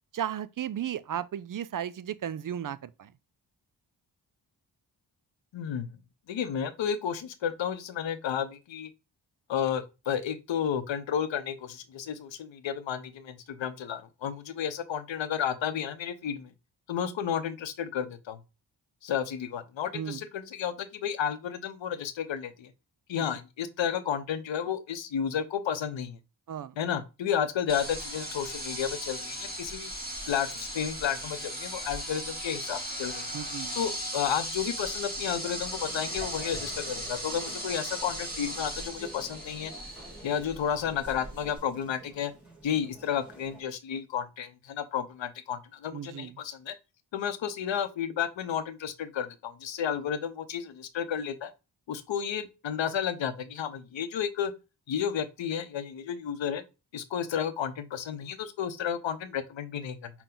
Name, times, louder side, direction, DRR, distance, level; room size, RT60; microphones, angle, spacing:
voice 1, 0.1-3.1 19.9-20.2 23.2-23.3 26.5-26.7 33.3-33.8 45.9-46.4, right 9 dB, 50° right, 0.4 m, -35 dB
voice 2, 5.5-6.0 6.3-8.9 9.5-16.5 16.9-18.4 19.0-22.7 23.1-26.2 26.8-29.9 30.3-33.3 33.7-39.7 40.2-42.3 42.6-46.7 47.1-51.5 51.9-54.5 54.9-56.6 56.9-60.1, left 8 dB, 85° left, 0.7 m, -32 dB
sound 1, 27.7-41.6, equal, 20° right, 2.8 m, -37 dB
sound 2, 35.2-43.6, right 2 dB, 5° right, 2.7 m, -50 dB
5.8 x 2.2 x 3.8 m
cardioid pair, 50°, 44 cm